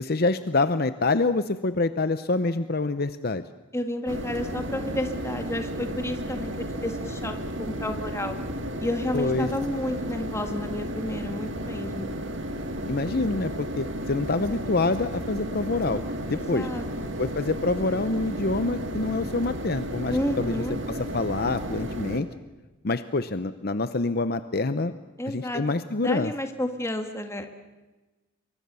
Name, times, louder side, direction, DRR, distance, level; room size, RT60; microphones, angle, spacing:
voice 1, 0.0-3.4 9.1-9.5 12.9-16.0 16.3-16.7 17.2-22.3 22.8-24.9 25.3-26.3, left 3 dB, 50° left, 11 dB, 0.7 m, -26 dB
voice 2, 3.7-8.4 8.8-12.1 16.3-17.2 20.1-20.7 25.2-25.6 26.0-27.5, left 1 dB, 15° left, 6 dB, 1.9 m, -31 dB
sound 1, 4.1-22.2, equal, 65° right, 2.2 m, -33 dB
26.5 x 24.0 x 7.0 m, 1.2 s
head